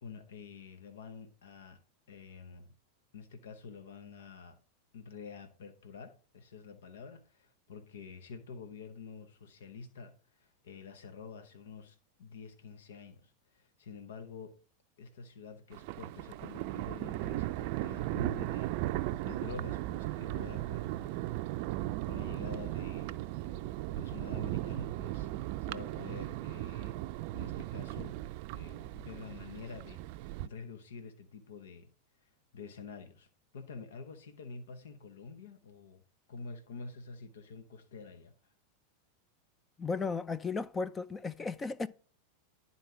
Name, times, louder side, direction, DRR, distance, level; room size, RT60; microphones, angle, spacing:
voice 1, 0.0-2.7 3.1-4.6 4.9-14.6 15.0-21.2 21.5-21.7 22.0-27.0 27.3-28.2 28.5-31.9 32.2-36.0 36.3-38.5, left 5 dB, 80° left, 0.9 m, -48 dB
Thunder, 15.7-30.5, right 16 dB, 55° right, 0.4 m, -37 dB
voice 2, 39.8-41.9, left 4 dB, 20° left, 0.4 m, -35 dB
11.0 x 4.1 x 4.5 m
hypercardioid pair, 105°, 0 cm